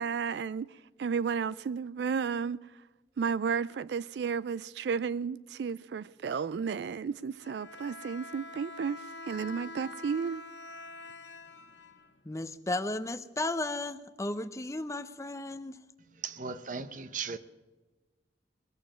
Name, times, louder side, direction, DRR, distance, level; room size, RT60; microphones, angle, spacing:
voice 1, 0.0-2.6 3.2-10.4, right 6 dB, 70° right, 0.4 m, -33 dB
Bowed string instrument, 7.4-12.4, left 2 dB, 80° left, 1.1 m, -46 dB
voice 2, 12.2-15.8, left 2 dB, 15° left, 0.6 m, -34 dB
voice 3, 16.0-17.4, right 5 dB, 45° right, 0.8 m, -38 dB
21.0 x 7.0 x 7.5 m
head